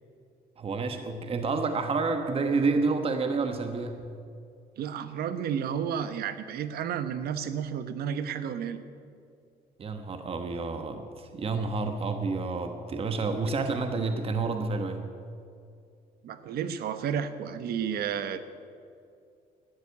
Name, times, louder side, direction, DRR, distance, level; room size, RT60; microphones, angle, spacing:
voice 1, 0.6-4.0 9.8-15.0, right 4 dB, 35° right, 6 dB, 1.2 m, -29 dB
voice 2, 4.8-8.8 16.2-18.4, right 8 dB, 65° right, 11 dB, 1.1 m, -32 dB
13.0 x 10.0 x 9.6 m, 2.4 s
cardioid pair, 110°, 17 cm